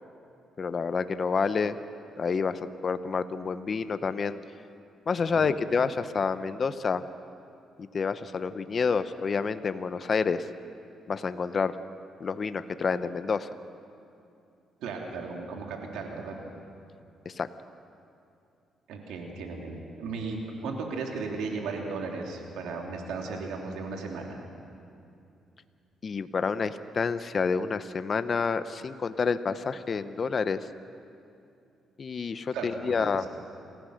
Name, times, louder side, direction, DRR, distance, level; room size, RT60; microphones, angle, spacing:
voice 1, 0.6-1.8 2.2-4.4 5.1-7.0 7.9-10.4 11.1-11.7 12.2-13.5 17.2-17.5 26.0-30.7 32.0-33.2, left 5 dB, 45° left, 12 dB, 0.8 m, -28 dB
voice 2, 14.8-16.3 18.9-24.4 32.5-33.2, right 4 dB, 85° right, 1 dB, 3.0 m, -35 dB
28.0 x 15.5 x 6.5 m, 2.6 s
cardioid pair, 90°, 0 cm